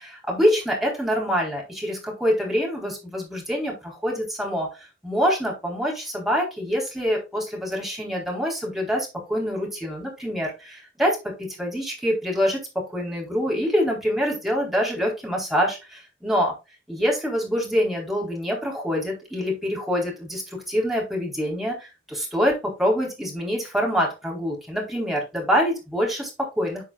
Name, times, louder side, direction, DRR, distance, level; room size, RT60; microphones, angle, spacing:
voice 1, 0.1-16.5 16.9-26.8, equal, ahead, -3 dB, 3.9 m, -25 dB
11.5 x 5.9 x 2.4 m, 0.27 s
head